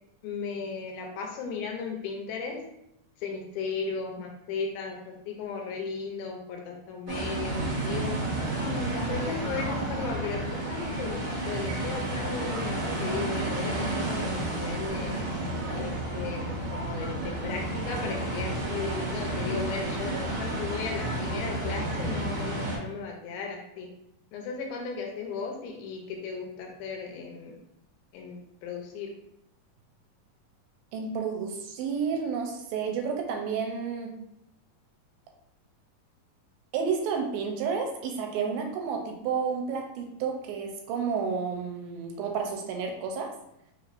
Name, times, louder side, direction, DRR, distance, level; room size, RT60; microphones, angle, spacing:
voice 1, 0.2-2.6 3.2-8.1 8.5-15.1 15.8-16.4 16.7-20.1 20.4-23.9 24.3-27.6 28.1-29.1, left 5 dB, 80° left, 1 dB, 2.5 m, -36 dB
sound 1, 7.1-22.8, right 1 dB, 60° right, 2.0 m, -31 dB
voice 2, 30.9-34.1 36.7-43.3, right 6 dB, 80° right, 2 dB, 2.4 m, -31 dB
5.6 x 3.1 x 2.5 m, 0.81 s
omnidirectional pair, 4.3 m